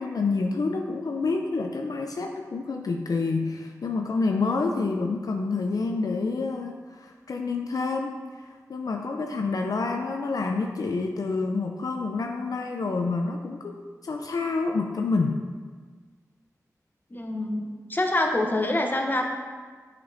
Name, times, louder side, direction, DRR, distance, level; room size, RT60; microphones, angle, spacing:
voice 1, 0.0-15.4, left 3 dB, 70° left, 3 dB, 0.4 m, -28 dB
voice 2, 17.1-19.2, left 1 dB, 30° left, 2 dB, 0.8 m, -26 dB
7.8 x 5.1 x 2.6 m, 1.5 s
wide cardioid pair, 55°, 6 cm